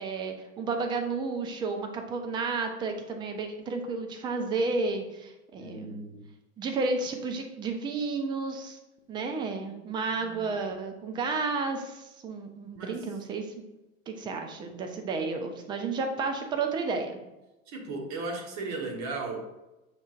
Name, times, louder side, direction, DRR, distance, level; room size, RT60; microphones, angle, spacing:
voice 1, 0.0-6.0 6.6-8.8 9.1-13.6 14.1-17.2, right 4 dB, 10° right, 5 dB, 0.4 m, -32 dB
voice 2, 5.5-6.3 10.1-10.6 12.7-13.0 17.7-19.4, right 3 dB, 40° right, 1 dB, 1.2 m, -36 dB
6.4 x 3.2 x 2.4 m, 0.99 s
figure-of-eight pair, 85°, 42 cm